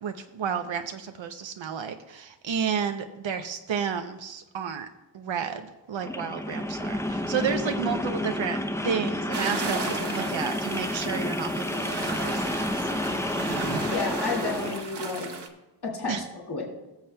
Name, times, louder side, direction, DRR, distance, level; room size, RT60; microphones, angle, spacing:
voice 1, 0.0-4.9 5.1-12.9 16.1-16.2, right 7 dB, 90° right, 6 dB, 0.7 m, -31 dB
sound 1, 6.0-14.8, left 1 dB, 5° left, 0.5 m, -30 dB
sound 2, 9.3-15.5, right 4 dB, 65° right, 1.1 m, -35 dB
voice 2, 13.9-15.3 15.8-16.1 16.5-16.6, left 4 dB, 60° left, -2 dB, 2.1 m, -31 dB
18.0 x 7.3 x 2.2 m, 1.0 s
wide cardioid pair, 100°, 44 cm